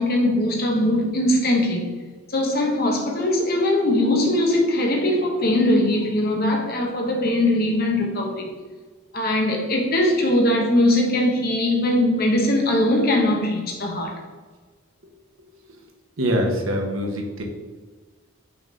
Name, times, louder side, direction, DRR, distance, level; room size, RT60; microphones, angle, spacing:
voice 1, 0.0-1.8 2.3-8.5 9.1-14.1, left 1 dB, 50° left, 0 dB, 1.2 m, -21 dB
voice 2, 16.2-17.4, equal, 80° right, 1 dB, 1.2 m, -24 dB
5.7 x 3.9 x 4.2 m, 1.4 s
head